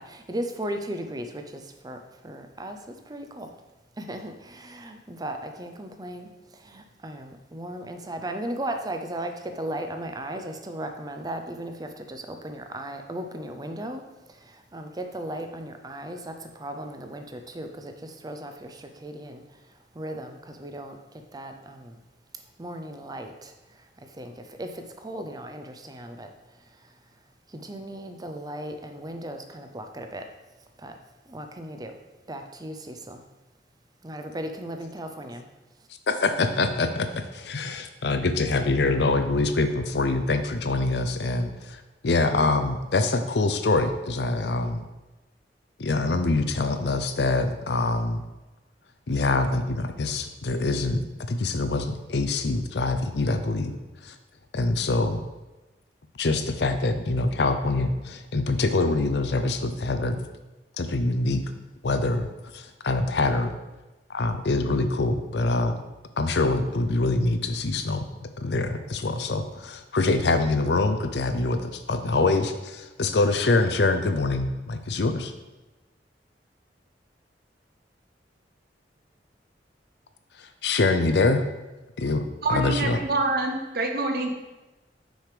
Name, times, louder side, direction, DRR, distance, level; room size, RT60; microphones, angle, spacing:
voice 1, 0.0-3.6 4.0-22.0 22.3-30.3 30.8-31.0 31.3-32.0 32.3-33.2 34.0-35.9, right 1 dB, 20° right, 5 dB, 0.6 m, -37 dB
voice 2, 36.1-44.9 45.8-48.2 49.1-51.0 51.3-53.7 54.0-54.1 54.5-55.2 56.2-60.2 60.8-61.4 61.8-62.3 62.5-63.5 64.1-65.7 66.2-75.3 80.4-81.5 82.0-83.0, left 3 dB, 70° left, 8 dB, 0.6 m, -25 dB
voice 3, 82.4-84.3, right 2 dB, 60° right, 3 dB, 1.0 m, -26 dB
6.4 x 5.0 x 5.0 m, 1.1 s
head